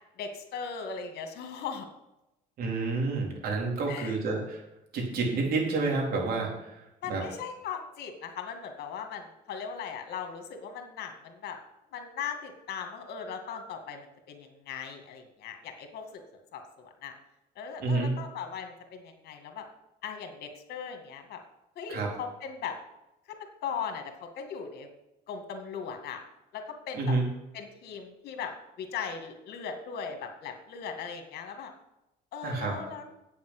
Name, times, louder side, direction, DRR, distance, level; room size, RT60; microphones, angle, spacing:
voice 1, 0.2-1.9 3.9-4.1 7.0-11.6 11.9-16.2 16.5-17.1 17.6-19.6 20.0-21.4 21.8-22.8 23.6-24.9 25.3-26.2 26.5-27.2 27.5-31.7 32.3-33.0, left 6 dB, 70° left, 5 dB, 2.1 m, -38 dB
voice 2, 2.6-4.6 4.9-6.8 7.1-7.2 17.8-18.2 21.9-22.1 26.9-27.3 32.4-32.8, right 3 dB, 65° right, -1 dB, 4.0 m, -29 dB
8.7 x 7.2 x 7.9 m, 0.92 s
cardioid pair, 110°, 17 cm